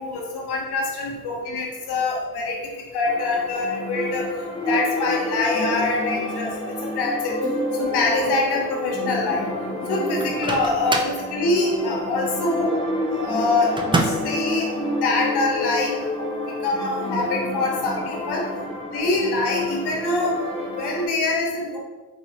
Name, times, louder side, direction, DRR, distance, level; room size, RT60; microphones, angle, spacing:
voice 1, 0.0-2.6 2.9-4.3 4.6-7.4 7.7-9.4 9.9-12.7 13.2-13.7 14.0-14.7 15.0-16.0 16.6-18.5 18.9-20.3 20.8-21.8, left 3 dB, 65° left, 0 dB, 1.0 m, -24 dB
sound 1, 3.1-21.1, left 1 dB, 15° left, 1.0 m, -28 dB
Microwave oven, 10.2-11.2 13.8-14.4, right 2 dB, 10° right, 0.4 m, -25 dB
4.1 x 2.4 x 2.9 m, 1.3 s
hypercardioid pair, 40°, 42 cm